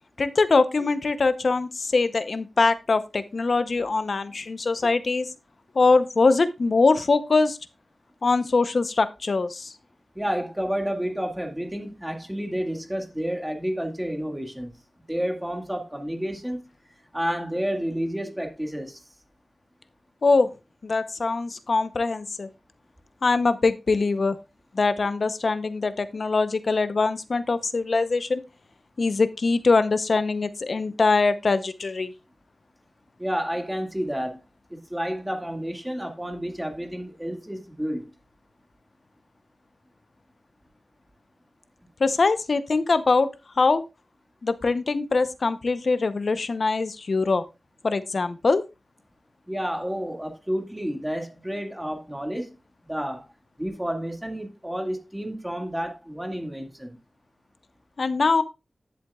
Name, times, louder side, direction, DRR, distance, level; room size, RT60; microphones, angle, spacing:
voice 1, 0.2-5.3 5.7-7.6 8.2-9.7 20.2-20.5 20.8-22.5 23.2-24.4 24.7-28.4 29.0-32.1 42.0-43.3 43.6-43.8 44.4-47.4 47.8-48.6 58.0-58.4, left 3 dB, 60° left, 0.7 m, -22 dB
voice 2, 10.2-14.7 15.1-16.6 17.1-19.0 33.2-34.4 34.7-38.1 49.5-52.6 52.8-53.3 53.6-57.0, equal, 10° right, 1.9 m, -30 dB
10.5 x 7.8 x 2.3 m
wide cardioid pair, 100°, 0 cm